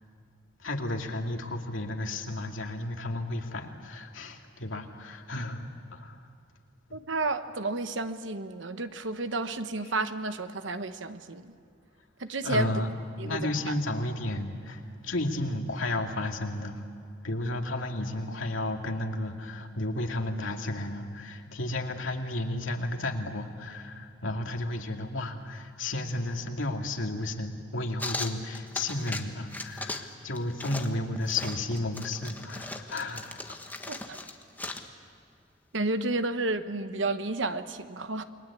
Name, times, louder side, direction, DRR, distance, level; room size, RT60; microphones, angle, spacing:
voice 1, 0.6-6.2 9.8-9.9 12.4-12.9 13.2-16.9 17.2-33.2, left 1 dB, 85° left, 3 dB, 2.4 m, -33 dB
voice 2, 6.9-11.5 12.2-12.7 13.2-13.4 33.9-34.2 35.7-38.2, right 2 dB, 70° right, 10 dB, 1.2 m, -31 dB
sound 1, 28.0-29.2 29.5-30.1 30.4-34.9, left 2 dB, 10° left, 1.3 m, -38 dB
29.0 x 22.0 x 8.5 m, 2.3 s
head